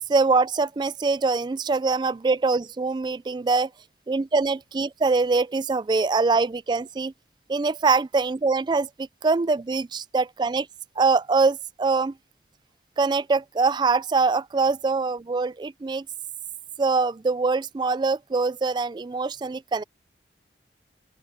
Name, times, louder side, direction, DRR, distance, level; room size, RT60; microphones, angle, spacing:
voice 1, 0.1-3.7 4.1-7.1 7.5-10.7 11.0-12.1 13.0-16.0 16.8-19.8, right 4 dB, 25° right, 0.3 m, -23 dB
open air
head